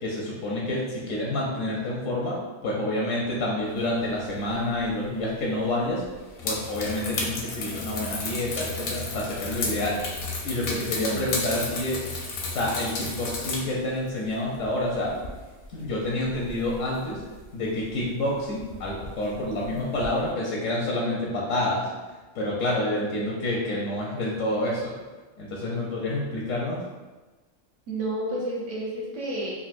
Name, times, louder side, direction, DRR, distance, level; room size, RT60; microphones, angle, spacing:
voice 1, 0.0-2.4 2.6-6.0 6.4-10.0 10.4-12.1 12.5-15.1 15.7-17.2 17.5-21.8 22.3-24.9 25.4-26.8, left 1 dB, 85° left, -3 dB, 1.0 m, -28 dB
sound 1, 4.5-4.9 5.2-5.3 6.0-13.7 14.0-17.4 17.8-18.1 18.4-20.3, left 3 dB, 60° left, 0.6 m, -33 dB
voice 2, 27.9-29.5, right 1 dB, 70° right, -4 dB, 1.1 m, -30 dB
3.8 x 2.2 x 2.4 m, 1.2 s
omnidirectional pair, 1.3 m